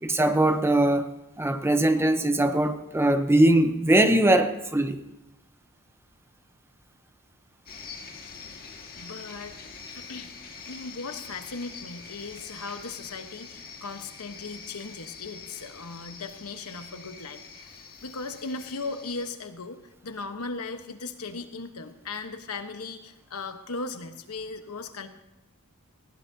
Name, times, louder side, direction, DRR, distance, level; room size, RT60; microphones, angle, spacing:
voice 1, 0.0-1.1 1.4-5.0, right 1 dB, 10° right, 8 dB, 0.8 m, -21 dB
sound 1, 7.7-19.3, left 5 dB, 45° left, 1.7 m, -45 dB
voice 2, 8.9-9.6 9.9-10.3 10.6-25.1, left 3 dB, 90° left, 7 dB, 1.1 m, -37 dB
19.0 x 16.5 x 2.8 m, 0.89 s
head